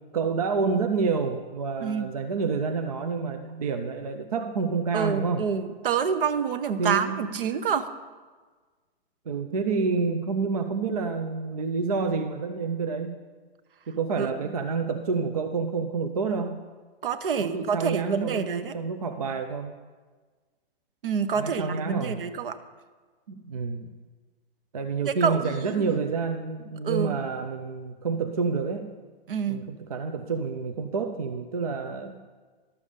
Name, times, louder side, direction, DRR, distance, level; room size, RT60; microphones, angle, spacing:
voice 1, 0.1-5.5 6.8-7.4 9.3-13.1 13.9-16.5 17.4-19.7 21.3-22.2 23.3-23.9 24.7-28.9 29.5-32.2, right 4 dB, 40° right, 7 dB, 0.4 m, -28 dB
voice 2, 1.8-2.1 4.9-7.9 14.2-14.3 17.0-18.7 21.0-22.6 25.1-26.1 26.8-27.2 29.3-29.6, right 6 dB, 60° right, 11 dB, 0.8 m, -27 dB
12.0 x 6.9 x 5.0 m, 1.4 s
hypercardioid pair, 180°, 31 cm